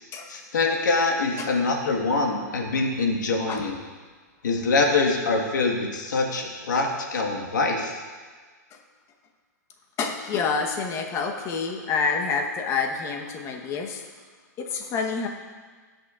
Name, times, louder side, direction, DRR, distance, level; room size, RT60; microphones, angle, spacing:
voice 1, 0.3-3.8 4.4-8.0, left 3 dB, 80° left, 1 dB, 1.6 m, -24 dB
voice 2, 10.0-14.0 14.6-15.3, left 5 dB, 30° left, 3 dB, 1.1 m, -28 dB
16.0 x 6.5 x 2.5 m, 1.5 s
hypercardioid pair, 130°, 10 cm